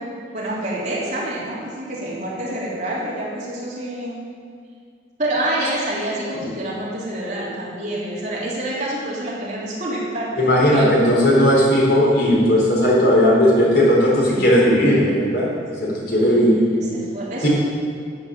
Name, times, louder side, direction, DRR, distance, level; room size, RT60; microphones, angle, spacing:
voice 1, 0.0-4.2 5.2-10.3 10.7-10.9 14.2-14.5 16.2-17.5, right 1 dB, 40° right, -7 dB, 3.5 m, -27 dB
voice 2, 10.4-15.5 15.8-16.6 17.4-17.5, equal, 60° left, -5 dB, 4.3 m, -16 dB
13.0 x 7.5 x 8.9 m, 2.2 s
head